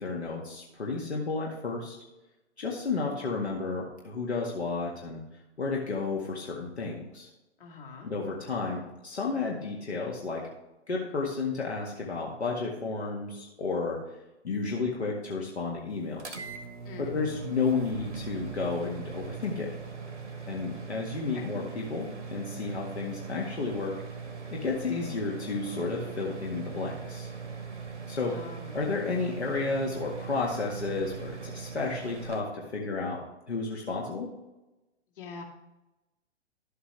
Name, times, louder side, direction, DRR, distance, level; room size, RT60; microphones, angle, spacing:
voice 1, 0.0-1.9 2.6-5.2 5.6-7.3 8.0-10.4 10.9-14.0 14.4-16.4 17.0-19.7 20.5-23.9 24.5-27.3 28.1-28.4 28.7-33.2 33.5-34.3, left 4 dB, 65° left, -2 dB, 1.8 m, -32 dB
voice 2, 7.6-8.1 16.8-17.3 21.3-21.4 28.3-28.9 35.2-35.4, left 4 dB, 50° left, -1 dB, 2.3 m, -44 dB
sound 1, 16.2-32.4, right 5 dB, 85° right, 1.4 m, -40 dB
11.5 x 7.9 x 3.3 m, 1.0 s
figure-of-eight pair, 120°, 35 cm